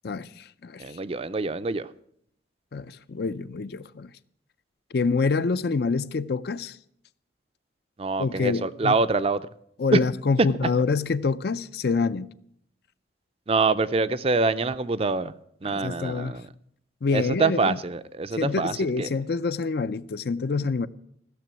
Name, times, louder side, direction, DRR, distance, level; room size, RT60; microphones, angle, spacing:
voice 1, 0.0-0.8 2.7-4.1 4.9-6.8 8.2-9.0 9.8-12.3 15.6-16.4 17.0-17.8 18.4-20.9, left 4 dB, 55° left, 0.5 m, -26 dB
voice 2, 0.8-1.9 8.0-9.4 9.9-10.0 13.5-15.3 15.6-16.4 17.1-19.1, right 3 dB, 30° right, 0.5 m, -25 dB
15.0 x 6.9 x 9.1 m
head